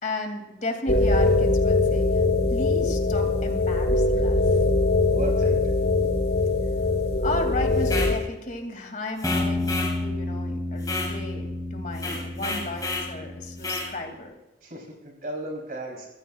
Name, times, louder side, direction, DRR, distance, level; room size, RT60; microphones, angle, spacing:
voice 1, 0.0-2.2 2.5-4.4 7.2-14.3, left 2 dB, 45° left, 5 dB, 2.5 m, -34 dB
sound 1, 0.9-8.2, left 2 dB, 65° left, 1.7 m, -22 dB
voice 2, 5.0-5.6 14.6-16.1, right 1 dB, 50° right, 0 dB, 3.6 m, -34 dB
sound 2, 7.8-8.2 9.2-10.0 10.8-11.1 11.9-13.1 13.6-13.9, left 3 dB, 20° left, 3.7 m, -31 dB
sound 3, 9.2-13.9, left 1 dB, ahead, 2.3 m, -31 dB
24.5 x 14.5 x 2.4 m, 1.0 s
head